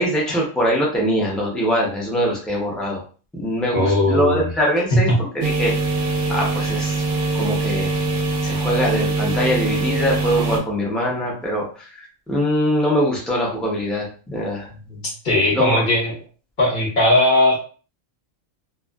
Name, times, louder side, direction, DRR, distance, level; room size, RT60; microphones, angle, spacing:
voice 1, 0.0-3.0 3.3-5.7 6.3-7.0 7.3-7.9 8.4-15.1 15.5-15.8, equal, ahead, -3 dB, 0.4 m, -22 dB
voice 2, 3.7-4.4 4.9-5.2 15.2-16.1 16.6-17.6, left 1 dB, 45° left, -3 dB, 0.9 m, -17 dB
sound 1, 5.4-10.6, right 3 dB, 90° right, 1.0 m, -23 dB
2.5 x 2.4 x 2.3 m, 0.38 s
omnidirectional pair, 1.4 m